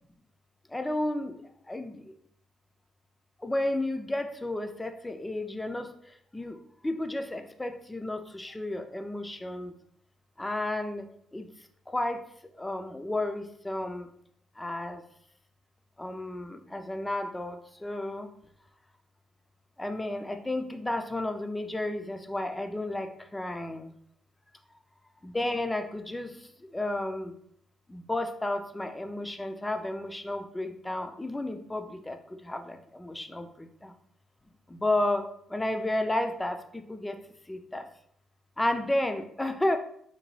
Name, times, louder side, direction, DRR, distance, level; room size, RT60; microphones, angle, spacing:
voice 1, 0.7-2.0 3.4-5.9 6.3-9.7 10.4-11.0 11.3-11.5 11.9-12.2 12.6-14.1 14.6-15.0 16.0-18.3 19.8-23.9 25.2-27.3 27.9-33.9 34.7-35.2 35.5-37.2 37.5-37.9 38.6-39.8, left 1 dB, 15° left, 7 dB, 0.4 m, -32 dB
3.8 x 2.2 x 3.1 m, 0.69 s
cardioid pair, 90°, 0 cm